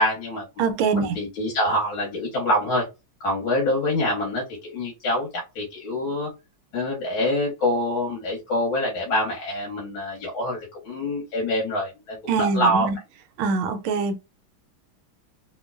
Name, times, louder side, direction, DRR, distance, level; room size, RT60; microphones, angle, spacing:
voice 1, 0.0-0.4 0.9-2.9 3.2-5.3 5.6-6.3 6.7-12.9, left 1 dB, 75° left, 1.9 m, -25 dB
voice 2, 0.6-1.1 12.3-13.0 13.4-14.2, right 4 dB, 85° right, 1.4 m, -23 dB
3.6 x 3.0 x 2.3 m
omnidirectional pair, 2.3 m